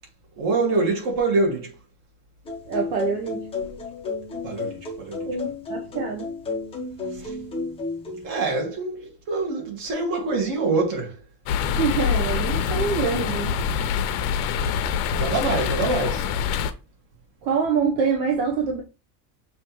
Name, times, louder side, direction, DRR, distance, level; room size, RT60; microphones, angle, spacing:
voice 1, 0.3-1.8 4.4-5.3 7.1-7.4 8.2-11.2 15.1-16.3, right 3 dB, 45° right, 1.8 m, -25 dB
sound 1, 2.5-8.3, left 3 dB, 10° left, 0.5 m, -32 dB
voice 2, 2.7-3.5 5.2-6.3 11.8-13.6 17.4-18.8, right 5 dB, 65° right, 0.9 m, -25 dB
sound 2, 11.5-16.7, left 7 dB, 75° left, 0.7 m, -25 dB
6.1 x 2.9 x 3.0 m
cardioid pair, 180°, 48 cm